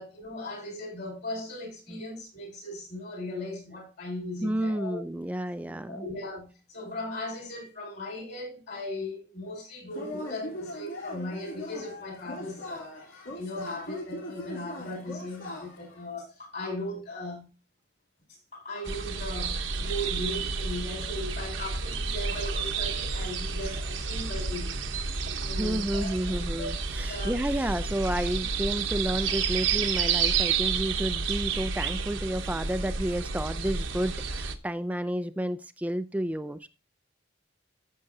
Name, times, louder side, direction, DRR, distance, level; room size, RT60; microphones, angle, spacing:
voice 1, 0.0-5.0 5.8-17.5 18.3-24.8 25.4-26.1 26.6-26.7 27.1-27.4, left 1 dB, 55° left, 5.1 m, -38 dB
voice 2, 4.4-6.1 25.5-36.7, right 1 dB, 5° right, 0.3 m, -31 dB
Yell / Cheering, 9.9-16.0, left 1 dB, 75° left, 3.5 m, -40 dB
sound 1, 18.9-34.6, right 5 dB, 70° right, 1.0 m, -30 dB
14.5 x 6.4 x 2.7 m
head